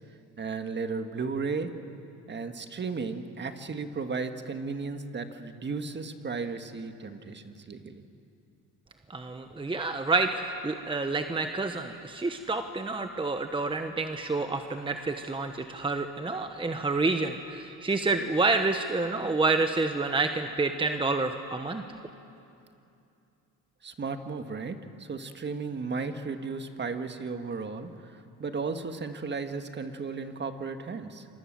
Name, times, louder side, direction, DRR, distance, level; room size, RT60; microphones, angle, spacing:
voice 1, 0.4-1.7 2.3-8.1 23.8-31.3, right 4 dB, 35° right, 7 dB, 1.7 m, -35 dB
voice 2, 9.1-21.8, right 3 dB, 15° right, 7 dB, 1.2 m, -28 dB
27.5 x 23.5 x 7.6 m, 2.7 s
cardioid pair, 95°, 33 cm